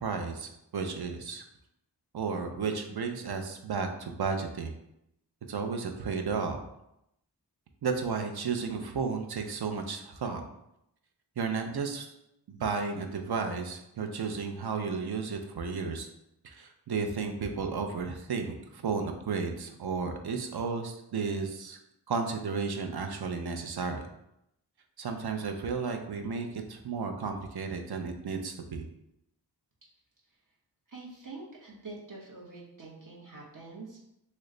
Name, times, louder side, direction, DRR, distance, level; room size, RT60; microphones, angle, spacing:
voice 1, 0.0-1.4 2.1-4.7 5.5-6.6 7.8-10.4 11.4-12.1 12.5-16.1 16.4-21.8 22.1-24.0 25.0-28.9, right 5 dB, 60° right, 5 dB, 0.5 m, -33 dB
voice 2, 30.9-34.0, right 3 dB, 45° right, -5 dB, 1.0 m, -45 dB
3.0 x 2.2 x 3.7 m, 0.82 s
wide cardioid pair, 65°, 43 cm